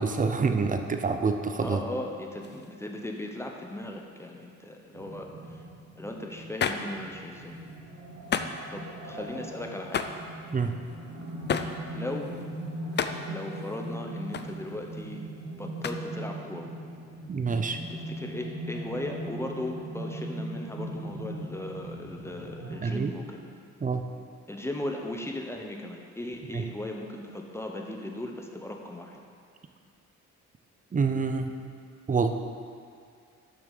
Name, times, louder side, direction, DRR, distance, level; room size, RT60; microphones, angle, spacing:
voice 1, 0.0-1.8 10.5-10.8 17.3-17.8 22.6-23.1 23.8-24.0 26.5-26.6 30.9-31.6 32.1-32.3, right 4 dB, 25° right, 7 dB, 0.7 m, -27 dB
voice 2, 1.6-5.6 5.9-7.6 8.7-10.1 11.9-12.4 13.3-15.2 15.6-16.7 17.9-23.4 24.5-29.2, left 1 dB, 10° left, 1 dB, 1.1 m, -37 dB
sound 1, 2.4-3.1 6.6-7.8 8.0-8.6 9.2-9.4 9.7-15.4 15.8-16.0, left 6 dB, 35° left, 0.5 m, -35 dB
sound 2, 4.9-22.8, right 1 dB, 60° right, 2.4 m, -40 dB
7.3 x 5.8 x 6.7 m, 2.3 s
cardioid pair, 90°, 30 cm